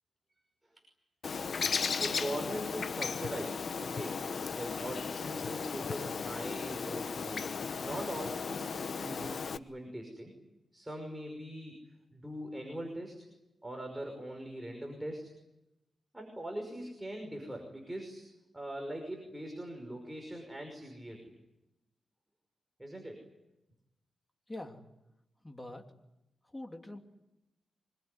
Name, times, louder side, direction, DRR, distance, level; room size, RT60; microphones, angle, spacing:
Bird, 1.2-9.6, left 5 dB, 55° left, 1.0 m, -36 dB
voice 1, 1.9-4.2 4.5-10.3 10.7-11.8 12.1-13.2 13.6-15.3 16.1-18.2 18.5-21.3 22.8-23.2, right 1 dB, 10° right, 2 dB, 5.6 m, -41 dB
voice 2, 24.5-24.8 25.4-25.8 26.5-27.0, left 1 dB, 15° left, 3 dB, 2.9 m, -44 dB
25.5 x 22.5 x 9.9 m, 0.92 s
wide cardioid pair, 120°, 0 cm